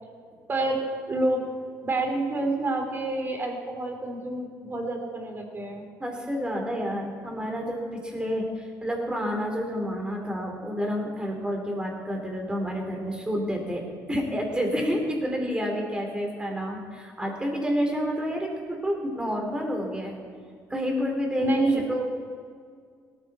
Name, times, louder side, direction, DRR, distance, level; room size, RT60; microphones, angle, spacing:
voice 1, 0.5-1.5 1.8-5.9 21.4-22.0, right 2 dB, 30° right, 3 dB, 3.1 m, -28 dB
voice 2, 6.0-20.1 20.7-21.6 21.9-22.0, equal, 15° right, 1 dB, 3.8 m, -29 dB
18.0 x 14.0 x 4.4 m, 2.1 s
cardioid pair, 90°, 7 cm